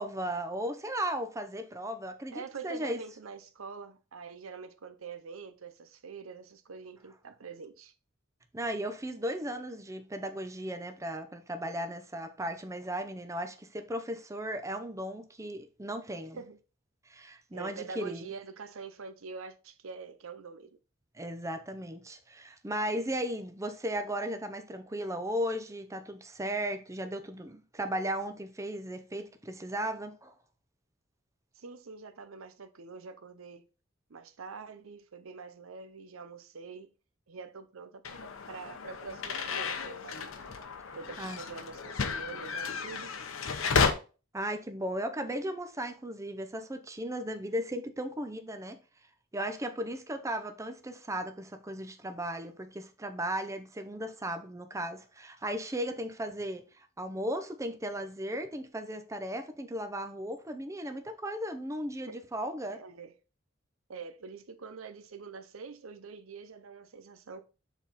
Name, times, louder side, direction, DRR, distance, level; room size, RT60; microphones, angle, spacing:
voice 1, 0.0-3.0 8.5-16.4 17.1-18.3 21.1-30.3 41.2-41.4 44.3-48.8 49.3-62.8, right 1 dB, 15° right, 0.6 m, -36 dB
voice 2, 2.3-7.9 16.3-16.6 17.5-20.8 31.5-33.6 34.1-36.9 37.3-40.4 40.9-43.1 62.1-62.2 62.7-63.1 63.9-67.4, right 5 dB, 85° right, 0.7 m, -45 dB
sound 1, 38.0-43.9, left 5 dB, 80° left, 0.8 m, -33 dB
7.1 x 4.1 x 4.0 m
head